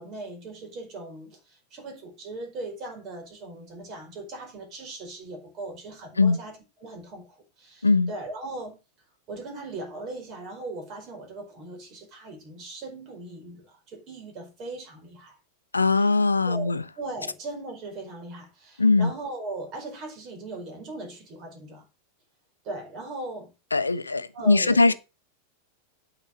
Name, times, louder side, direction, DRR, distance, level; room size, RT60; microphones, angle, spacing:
voice 1, 0.0-8.8 9.3-15.4 15.9-16.1 16.4-21.8 22.6-23.5 24.3-24.9, right 2 dB, 35° right, 5.0 m, -39 dB
voice 2, 15.7-16.8 18.8-19.1 23.7-24.9, left 3 dB, 80° left, 0.7 m, -20 dB
9.0 x 5.7 x 6.4 m
figure-of-eight pair, 90°, 0 cm